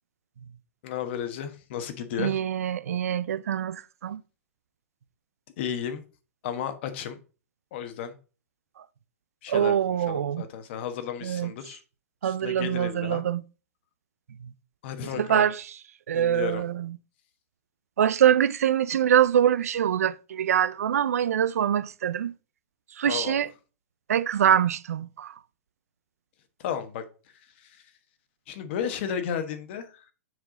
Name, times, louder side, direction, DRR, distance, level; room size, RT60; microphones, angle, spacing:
voice 1, 0.8-2.4 5.6-6.0 6.4-7.2 7.7-8.1 9.4-11.8 12.2-13.2 14.8-15.5 16.1-16.6 23.0-23.4 26.6-27.0 27.6-27.8 28.5-30.0, left 8 dB, 50° left, 1.2 m, -33 dB
voice 2, 2.2-4.2 8.8-8.9 9.5-10.4 11.2-11.5 12.2-13.4 14.4-14.5 15.2-15.6 16.1-17.0 18.0-22.3 23.0-23.5 24.1-25.3, right 9 dB, 90° right, 0.4 m, -24 dB
6.4 x 4.7 x 3.9 m
hypercardioid pair, 150°, 8 cm